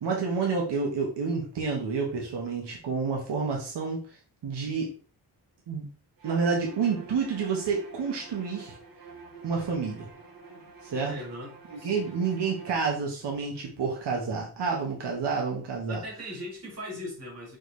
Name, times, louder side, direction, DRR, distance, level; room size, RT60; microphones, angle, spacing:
voice 1, 0.0-4.2 4.4-4.9 5.7-5.9 6.2-8.8 9.4-10.1 10.8-11.1 11.7-16.0, right 5 dB, 80° right, -1 dB, 1.8 m, -29 dB
Bowed string instrument, 6.2-12.9, right 4 dB, 55° right, 1.9 m, -47 dB
voice 2, 11.1-12.1 15.9-17.6, equal, 40° right, -3 dB, 3.7 m, -39 dB
6.3 x 6.1 x 3.4 m, 0.39 s
wide cardioid pair, 170°, 40 cm